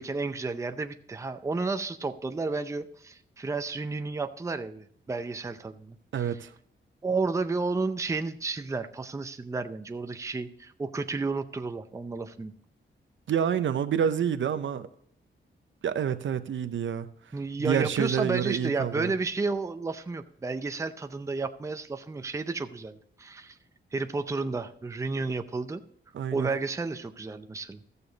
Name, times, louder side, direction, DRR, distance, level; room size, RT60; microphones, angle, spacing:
voice 1, 0.0-6.4 7.0-12.5 17.3-23.6 23.9-25.8 26.3-27.8, right 3 dB, 15° right, 0.5 m, -32 dB
voice 2, 6.1-6.5 13.3-14.9 15.8-17.1 17.6-19.1 26.1-26.5, right 8 dB, 75° right, 0.6 m, -28 dB
14.0 x 6.8 x 3.9 m
wide cardioid pair, 135°, 20 cm